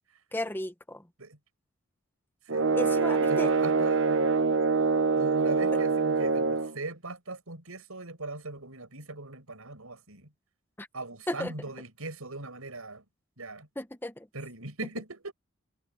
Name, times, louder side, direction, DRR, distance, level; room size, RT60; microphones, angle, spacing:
voice 1, 0.3-1.0 2.8-3.5 10.8-10.9 11.3-11.5 13.8-14.3, left 1 dB, 10° left, 0.9 m, -34 dB
sound 1, 2.5-6.7, right 4 dB, 60° right, 0.9 m, -25 dB
voice 2, 2.5-4.3 5.2-10.3 10.9-13.0 13.4-13.7 14.3-15.3, right 2 dB, 85° right, 5.8 m, -39 dB
head